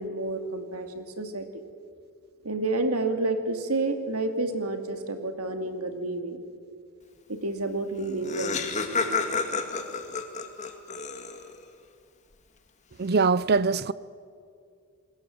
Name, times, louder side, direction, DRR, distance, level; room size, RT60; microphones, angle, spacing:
voice 1, 0.0-1.5 2.4-6.4 7.3-8.6, right 2 dB, 80° right, 2.5 m, -29 dB
Laughter, 7.7-7.8 8.0-11.6, left 4 dB, 30° left, 2.0 m, -30 dB
voice 2, 13.0-13.9, right 4 dB, 45° right, 0.6 m, -22 dB
29.0 x 20.5 x 7.9 m
head